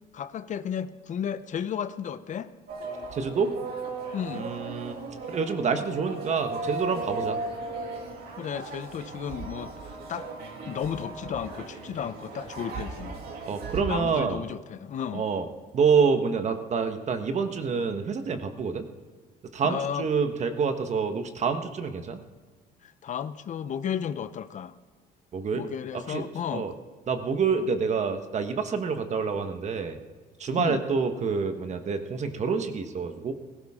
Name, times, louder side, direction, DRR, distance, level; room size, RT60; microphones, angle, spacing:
voice 1, 0.1-2.5 4.1-4.5 8.4-10.3 10.6-13.2 13.7-15.3 19.6-20.1 22.8-24.7 25.5-26.7 30.6-30.8, left 8 dB, 45° left, 13 dB, 0.7 m, -33 dB
sound 1, 2.7-13.8, right 3 dB, 70° right, 2.8 m, -37 dB
voice 2, 3.1-3.5 4.3-5.0 5.3-7.4 13.5-14.4 15.1-15.5 15.7-18.9 19.5-22.2 25.3-25.7 25.9-26.2 26.5-26.7 27.1-30.0 30.4-33.3, right 5 dB, 45° right, 7 dB, 1.4 m, -27 dB
17.0 x 15.5 x 3.7 m, 1.5 s
cardioid pair, 110°, 17 cm